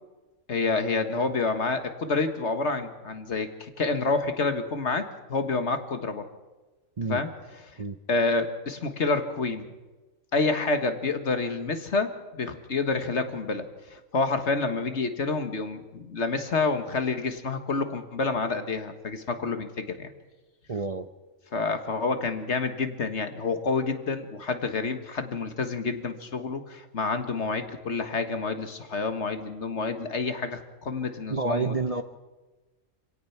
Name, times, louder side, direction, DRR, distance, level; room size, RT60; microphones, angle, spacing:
voice 1, 0.5-6.2 7.1-7.7 8.1-9.7 10.3-20.1 21.5-31.8, left 3 dB, 60° left, 8 dB, 1.8 m, -28 dB
voice 2, 20.7-21.1 31.3-32.0, right 4 dB, 35° right, 8 dB, 0.7 m, -28 dB
26.0 x 17.5 x 5.8 m, 1.2 s
omnidirectional pair, 1.3 m